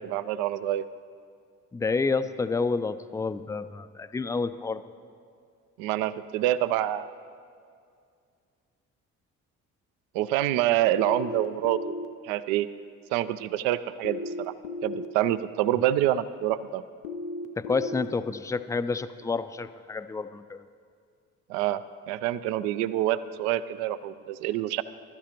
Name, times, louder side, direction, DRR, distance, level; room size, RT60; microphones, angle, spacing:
voice 1, 0.1-0.9 5.8-7.1 10.1-11.8 12.2-12.7 13.1-14.5 14.8-16.8 21.5-24.8, right 13 dB, 75° right, 15 dB, 0.5 m, -26 dB
voice 2, 1.7-4.8 15.7-15.8 17.6-20.6, left 4 dB, 10° left, 12 dB, 0.3 m, -29 dB
sound 1, 11.1-12.1 14.0-15.1 17.0-18.1, left 2 dB, 85° left, 0.5 m, -35 dB
15.5 x 12.0 x 3.0 m, 2.3 s
hypercardioid pair, 45°, 39 cm